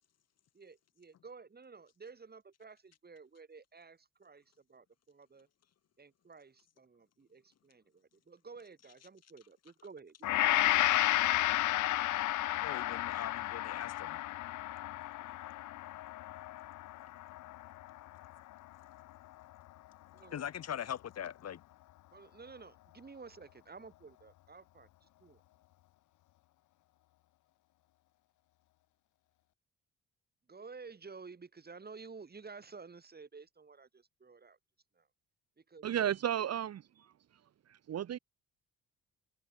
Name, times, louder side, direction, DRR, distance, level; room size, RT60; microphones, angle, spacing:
voice 1, 0.5-5.5 6.0-10.4 20.1-20.4 22.1-25.4 30.5-34.6 34.9-35.1 35.6-35.9, right 4 dB, 30° right, 7.6 m, -52 dB
Gong, 10.2-18.5 19.0-19.2, left 16 dB, 75° left, 0.8 m, -32 dB
voice 2, 12.6-14.2 20.3-21.6, left 9 dB, 55° left, 1.8 m, -41 dB
voice 3, 35.8-37.1 37.7-38.2, right 10 dB, 55° right, 1.3 m, -34 dB
cardioid pair, 90°, 30 cm